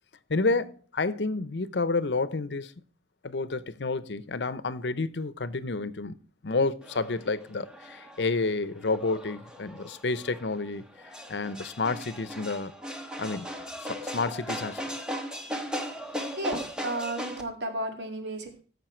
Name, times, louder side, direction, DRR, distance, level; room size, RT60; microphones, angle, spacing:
voice 1, 0.3-2.7 3.2-6.1 6.4-10.8 11.3-12.7 13.2-13.5 13.8-14.8, left 3 dB, 85° left, 0.8 m, -30 dB
sound 1, 6.8-17.4, equal, 5° right, 1.1 m, -38 dB
voice 2, 16.4-18.6, right 1 dB, 80° right, 2.1 m, -33 dB
14.5 x 6.7 x 4.4 m
head